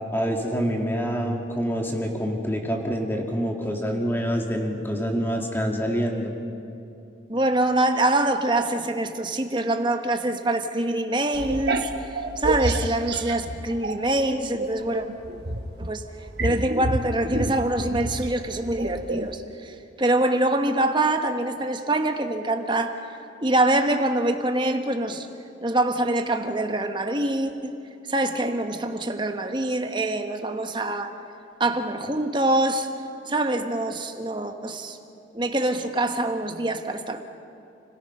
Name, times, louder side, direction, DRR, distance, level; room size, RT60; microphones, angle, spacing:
voice 1, 0.1-6.3, equal, 10° left, 1 dB, 2.1 m, -26 dB
voice 2, 7.3-15.1 15.8-16.0 16.4-23.0 23.4-25.3 25.6-27.8 28.1-31.1 31.6-32.9 33.3-35.0 35.3-37.2, right 1 dB, 25° right, 6 dB, 1.2 m, -25 dB
sound 1, 11.3-14.2 14.6-19.4, right 2 dB, 60° right, 1.2 m, -29 dB
29.5 x 17.5 x 5.5 m, 2.7 s
head